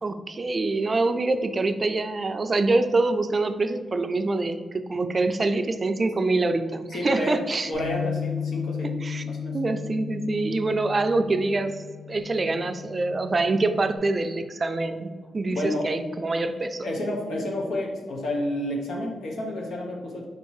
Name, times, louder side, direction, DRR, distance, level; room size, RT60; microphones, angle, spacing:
voice 1, 0.0-7.7 9.0-9.2 9.5-16.9, right 2 dB, 35° right, 9 dB, 0.3 m, -25 dB
voice 2, 6.9-7.4 7.7-9.6 15.5-15.9 16.8-20.2, left 1 dB, 80° left, -2 dB, 0.8 m, -30 dB
Bass guitar, 7.7-14.0, left 7 dB, 55° left, 1.4 m, -35 dB
4.2 x 2.6 x 4.6 m, 1.5 s
cardioid pair, 80°, 0 cm